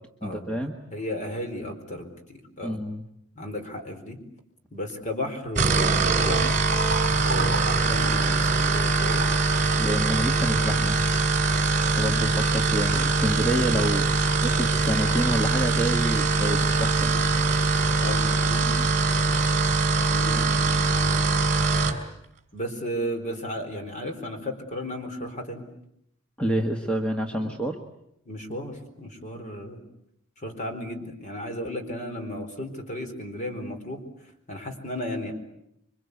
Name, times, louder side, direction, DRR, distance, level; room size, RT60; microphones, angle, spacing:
voice 1, 0.2-0.7 2.6-3.0 9.7-11.0 12.0-17.1 20.3-20.5 26.4-27.8, right 1 dB, 5° left, 2 dB, 1.6 m, -28 dB
voice 2, 0.9-2.8 3.4-4.2 4.7-6.5 7.2-9.3 16.1-16.7 17.1-17.3 18.0-18.7 19.1-19.3 20.0-21.4 21.7-21.9 22.5-25.6 27.3-27.6 28.3-29.8 30.4-35.3, equal, 35° left, 6 dB, 4.4 m, -34 dB
sound 1, 5.4-22.0, right 3 dB, 35° right, 3.3 m, -23 dB
27.5 x 24.5 x 8.4 m, 0.78 s
head